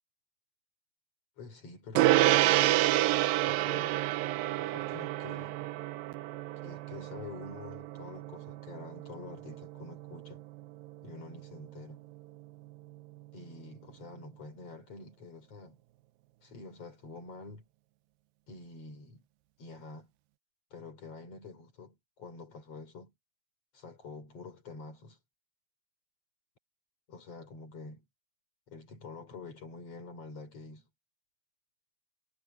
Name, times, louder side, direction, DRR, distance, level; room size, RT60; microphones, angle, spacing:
voice 1, 1.4-2.4 3.4-4.1 4.6-5.7 6.6-10.4 11.0-12.0 13.3-15.8 16.4-17.7 18.5-19.2 19.6-20.1 20.7-23.1 23.7-25.2 27.1-28.1 28.7-30.9, left 3 dB, 40° left, 4.5 m, -47 dB
Gong, 2.0-11.7, right 16 dB, 75° right, 2.2 m, -29 dB
omnidirectional pair, 4.7 m